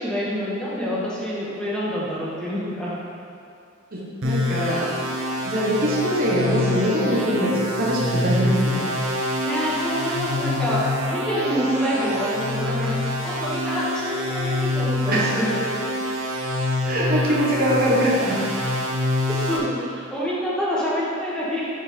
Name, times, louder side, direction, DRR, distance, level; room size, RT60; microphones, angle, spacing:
voice 1, 0.0-3.0 9.4-13.0 13.2-15.6 19.2-21.7, equal, 5° left, -8 dB, 1.6 m, -27 dB
voice 2, 3.9-5.0 5.4-8.9 15.1-15.3 16.8-18.5, equal, 50° right, -5 dB, 1.2 m, -23 dB
sound 1, 4.2-19.6, left 1 dB, 75° right, 1.2 m, -26 dB
9.3 x 4.7 x 4.4 m, 2.5 s
head